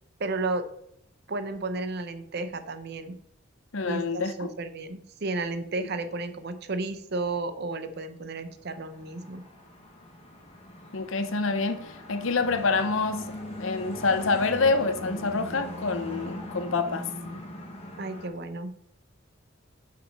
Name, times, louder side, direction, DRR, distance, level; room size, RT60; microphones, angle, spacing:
voice 1, 0.2-0.7 1.3-3.2 3.9-9.4 18.0-18.7, right 3 dB, 50° right, 0.7 m, -33 dB
voice 2, 3.7-4.5 10.9-13.2 13.6-17.1, left 4 dB, 70° left, 0.8 m, -27 dB
sound 1, 8.6-18.3, left 1 dB, 30° left, 1.4 m, -40 dB
6.1 x 5.6 x 5.4 m
head